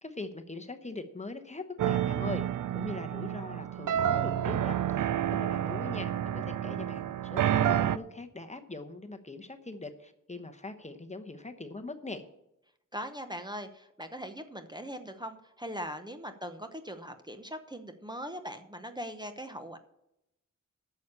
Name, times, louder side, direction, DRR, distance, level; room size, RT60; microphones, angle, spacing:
voice 1, 0.0-2.5 2.7-12.2, left 3 dB, 20° left, 7 dB, 1.0 m, -42 dB
sound 1, 1.8-8.0, right 10 dB, 75° right, 0.5 m, -29 dB
voice 2, 12.9-19.8, equal, 15° right, 7 dB, 0.9 m, -40 dB
9.2 x 6.8 x 8.7 m, 0.85 s
wide cardioid pair, 75°, 31 cm